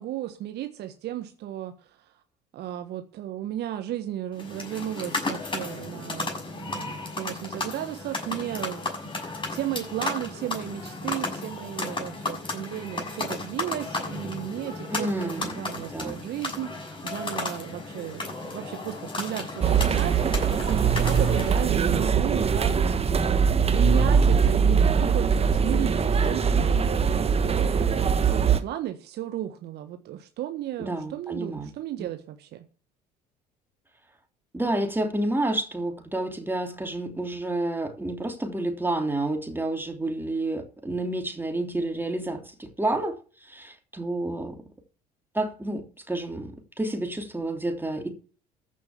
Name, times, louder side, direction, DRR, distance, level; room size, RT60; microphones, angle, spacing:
voice 1, 0.0-2.1 2.5-23.4 23.7-32.6, right 12 dB, 55° right, 1.4 m, -34 dB
sound 1, 4.3-21.7, left 2 dB, 25° left, 6.8 m, -34 dB
voice 2, 14.9-15.5 15.8-16.2 30.8-31.7 34.5-43.2 43.5-44.6 45.3-45.8 46.1-46.5 46.8-48.1, right 2 dB, 10° right, 3.0 m, -29 dB
sound 2, 19.6-28.6, right 6 dB, 30° right, 1.5 m, -22 dB
14.0 x 6.2 x 7.3 m
figure-of-eight pair, 60°, 21 cm